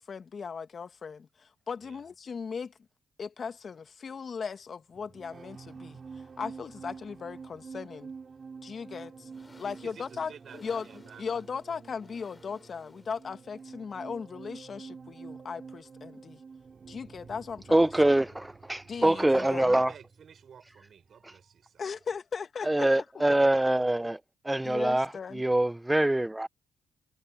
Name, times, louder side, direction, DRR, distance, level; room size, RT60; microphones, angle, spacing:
voice 1, 0.0-2.7 3.2-8.1 8.6-9.3 9.6-10.9 11.2-16.4 16.9-18.2 18.9-19.7 21.8-22.9 23.1-23.2 24.6-25.4, left 5 dB, 55° left, 1.6 m, -38 dB
sound 1, 3.5-21.4, left 3 dB, 30° left, 4.2 m, -65 dB
sound 2, 4.9-21.6 21.8-22.2, right 5 dB, 50° right, 2.5 m, -48 dB
voice 2, 9.6-11.2 18.9-21.8, right 7 dB, 65° right, 6.1 m, -51 dB
voice 3, 17.7-19.9 21.2-21.3 22.6-26.5, right 1 dB, 15° right, 0.5 m, -25 dB
supercardioid pair, 50°, 0 cm